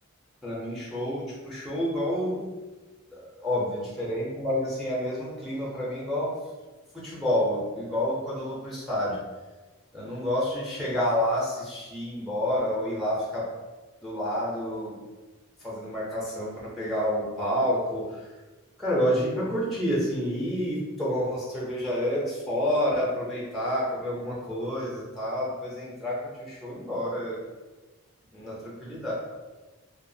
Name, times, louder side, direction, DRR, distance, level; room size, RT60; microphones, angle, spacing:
voice 1, 0.4-2.5 3.1-6.3 6.9-9.2 9.9-13.5 14.0-15.0 15.6-18.3 18.8-27.4 28.3-29.1, equal, ahead, -6 dB, 0.5 m, -29 dB
2.7 x 2.3 x 2.6 m, 1.2 s
head